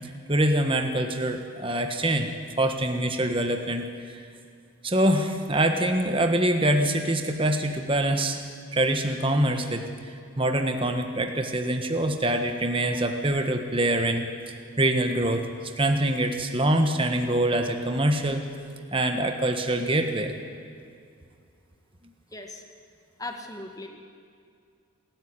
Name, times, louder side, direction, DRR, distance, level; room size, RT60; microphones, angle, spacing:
voice 1, 0.3-2.3 2.6-4.2 4.8-8.4 8.7-14.3 14.8-18.4 18.9-20.3, right 1 dB, 25° right, 5 dB, 1.4 m, -25 dB
voice 2, 22.3-22.6 23.2-23.9, left 2 dB, 15° left, 4 dB, 1.8 m, -38 dB
26.5 x 14.0 x 9.8 m, 2.3 s
head